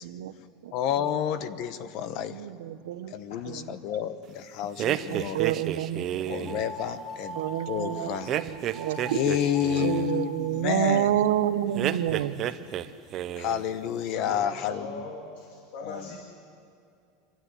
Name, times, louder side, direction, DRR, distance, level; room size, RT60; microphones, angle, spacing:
voice 1, 0.0-0.3 0.6-0.7 2.3-3.1 3.4-3.7 4.8-6.7 7.4-9.2 9.8-12.4, right 11 dB, 85° right, 11 dB, 1.0 m, -29 dB
voice 2, 0.7-2.3 3.1-5.4 6.3-7.4 7.7-8.3 9.1-11.2 13.4-15.0 15.8-16.2, left 10 dB, 45° left, 12 dB, 1.0 m, -30 dB
voice 3, 3.3-3.6 4.9-5.0 5.4-5.5 6.3-6.5 12.0-12.1 12.6-12.8 13.0-13.2 14.1-16.2, left 3 dB, 65° left, 2 dB, 2.3 m, -42 dB
sound 1, 4.8-6.6 8.3-10.1 11.7-12.9 13.1-13.6, right 11 dB, 30° right, 0.7 m, -31 dB
sound 2, 6.4-8.3 8.7-9.1 9.5-10.3, equal, 10° right, 1.5 m, -40 dB
26.5 x 12.5 x 10.0 m, 2.5 s
supercardioid pair, 165°, 0 cm